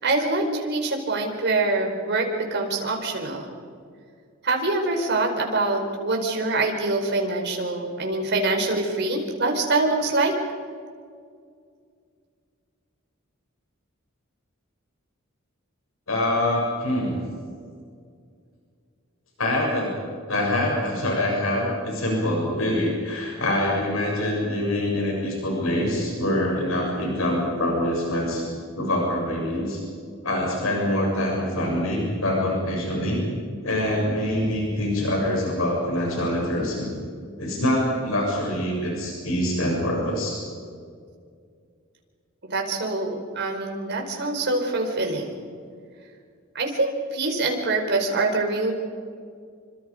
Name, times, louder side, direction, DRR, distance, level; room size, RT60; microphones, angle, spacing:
voice 1, 0.0-3.5 4.4-10.3 42.5-45.4 46.5-48.7, right 2 dB, 55° right, 2 dB, 4.6 m, -25 dB
voice 2, 16.1-17.2 19.4-20.0 20.3-28.5 28.7-29.8 30.2-33.2 33.6-37.0 37.4-40.4, left 1 dB, 85° left, -2 dB, 7.5 m, -25 dB
27.5 x 25.5 x 5.2 m, 2.2 s
head